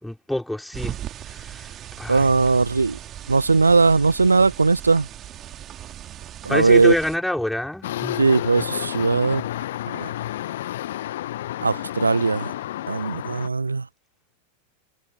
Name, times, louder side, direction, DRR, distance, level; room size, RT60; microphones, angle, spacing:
voice 1, 0.0-1.0 1.2-2.4 6.5-8.2, left 1 dB, 5° left, 4.9 m, -27 dB
sound 1, 0.7-7.2, right 11 dB, 30° right, 2.8 m, -38 dB
voice 2, 2.1-3.0 3.3-5.1 6.4-7.0 8.2-9.4 10.0-10.1 11.6-12.5 12.9-13.8, right 4 dB, 80° right, 0.9 m, -19 dB
sound 2, 7.8-13.5, left 13 dB, 55° left, 1.1 m, -30 dB
figure-of-eight pair, 90°, 0 cm